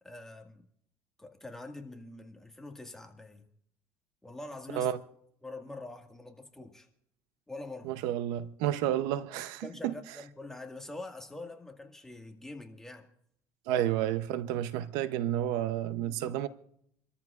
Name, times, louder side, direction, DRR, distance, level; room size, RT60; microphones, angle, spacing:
voice 1, 0.0-0.7 1.2-3.5 4.2-4.9 5.4-6.9 7.5-7.9 9.6-13.1 13.7-13.8 16.0-16.4, left 2 dB, 5° left, 1.8 m, -45 dB
voice 2, 7.8-9.9 13.7-16.5, right 11 dB, 85° right, 0.7 m, -31 dB
27.5 x 13.5 x 2.4 m
cardioid pair, 115°, 6 cm